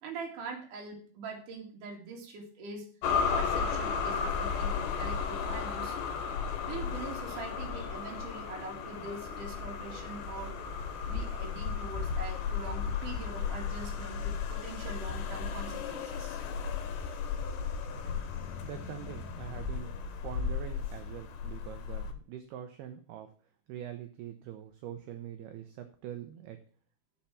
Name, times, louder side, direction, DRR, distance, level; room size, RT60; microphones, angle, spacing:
voice 1, 0.0-2.9 3.3-6.0 6.6-10.6 11.1-16.4 17.4-17.6, right 3 dB, 50° right, 0 dB, 3.4 m, -43 dB
sound 1, 3.0-22.1, left 6 dB, 75° left, 3.3 m, -34 dB
voice 2, 18.6-19.9 20.2-23.3 23.7-26.6, right 10 dB, 80° right, 7 dB, 2.4 m, -44 dB
7.3 x 7.3 x 7.1 m, 0.42 s
omnidirectional pair, 5.4 m